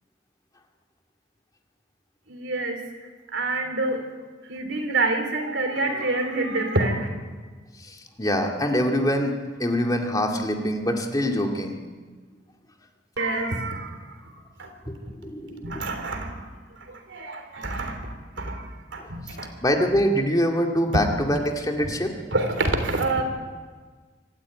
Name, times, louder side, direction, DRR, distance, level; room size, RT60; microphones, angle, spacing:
voice 1, 2.3-2.8 3.3-4.0 4.5-7.1 13.2-14.0 14.6-14.7 15.6-16.3 16.9-18.6 18.9-19.5 22.3-23.2, right 2 dB, 90° right, 6 dB, 3.5 m, -27 dB
voice 2, 7.8-11.8 14.9-15.0 15.2-15.8 16.3-16.4 19.0-19.4 19.6-22.1, equal, 20° left, 2 dB, 2.2 m, -24 dB
25.0 x 12.5 x 9.5 m, 1.4 s
head